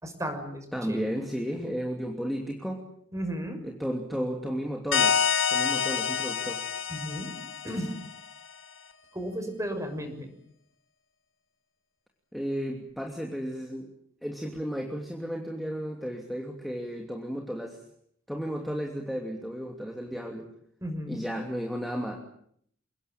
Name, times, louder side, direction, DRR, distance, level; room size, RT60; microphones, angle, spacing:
voice 1, 0.0-1.0 3.1-3.6 6.9-7.4 7.6-7.9 9.1-10.3 20.8-21.2, equal, 15° right, 6 dB, 6.3 m, -34 dB
voice 2, 0.7-2.8 3.6-5.2 5.5-6.6 12.3-13.9 14.2-17.8 18.3-20.5 21.1-22.2, equal, ahead, 1 dB, 2.8 m, -33 dB
sound 1, 4.9-8.3, left 7 dB, 65° left, 2.0 m, -27 dB
29.0 x 19.0 x 9.0 m, 0.67 s
head